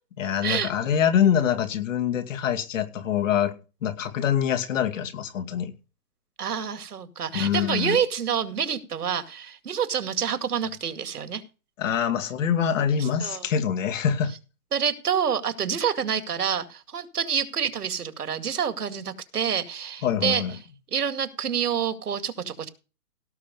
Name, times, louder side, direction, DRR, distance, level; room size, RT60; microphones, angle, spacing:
voice 1, 0.2-3.5 3.8-5.7 7.3-8.0 11.8-14.3 20.0-20.5, left 8 dB, 55° left, 7 dB, 2.5 m, -24 dB
voice 2, 6.4-11.4 13.0-13.5 14.7-20.4 20.9-22.7, right 7 dB, 85° right, 9 dB, 2.3 m, -27 dB
17.5 x 6.0 x 5.4 m, 0.32 s
hypercardioid pair, 150°, 45 cm